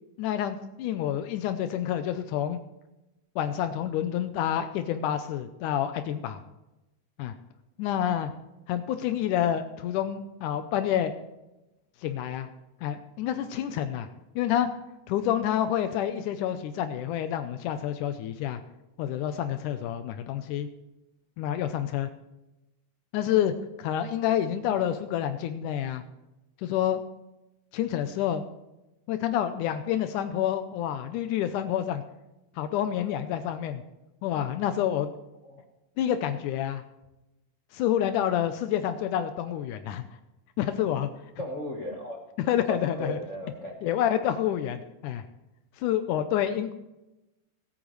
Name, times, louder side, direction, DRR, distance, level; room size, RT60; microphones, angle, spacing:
voice 1, 0.2-2.6 3.4-6.4 7.2-7.3 7.8-8.3 8.7-11.1 12.0-12.5 12.8-14.1 14.4-14.7 15.1-18.6 19.0-20.7 21.4-22.1 23.1-26.0 26.6-27.0 27.7-28.4 29.1-32.0 32.6-33.8 34.2-35.1 36.0-36.8 37.7-40.0 40.6-41.1 42.5-43.2 43.8-45.2 45.8-46.7, left 10 dB, 85° left, 9 dB, 2.2 m, -28 dB
voice 2, 41.4-42.2 42.7-43.7, left 1 dB, 50° left, -1 dB, 0.8 m, -35 dB
20.0 x 9.1 x 3.2 m, 0.96 s
omnidirectional pair, 3.6 m